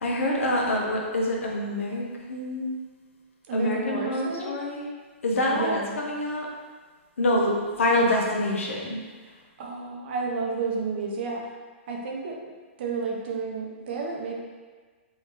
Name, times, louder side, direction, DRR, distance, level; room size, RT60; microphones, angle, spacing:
voice 1, 0.0-2.8 3.5-4.9 5.2-6.5 7.2-9.0, left 1 dB, 85° left, -1 dB, 0.8 m, -26 dB
voice 2, 3.5-4.6 5.5-6.0 9.6-11.4 11.9-12.3 12.8-14.3, right 4 dB, 60° right, -1 dB, 0.8 m, -31 dB
3.6 x 2.7 x 3.1 m, 1.4 s
hypercardioid pair, 140°, 7 cm